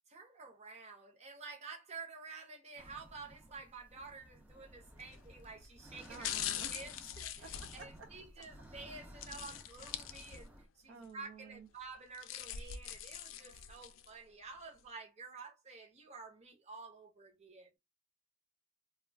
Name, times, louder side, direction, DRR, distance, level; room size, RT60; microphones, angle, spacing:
voice 1, 0.1-17.7, right 4 dB, 35° right, 0.8 m, -51 dB
sound 1, 2.8-10.6, equal, 10° right, 0.4 m, -56 dB
sound 2, 5.0-5.3 6.0-8.5 9.2-10.7 11.0-11.1 11.9-14.1 14.6-14.7, left 10 dB, 80° left, 0.4 m, -43 dB
voice 2, 6.1-6.7 7.4-7.5 7.8-7.9 10.9-11.7, right 4 dB, 65° right, 0.5 m, -50 dB
2.3 x 2.2 x 3.3 m
head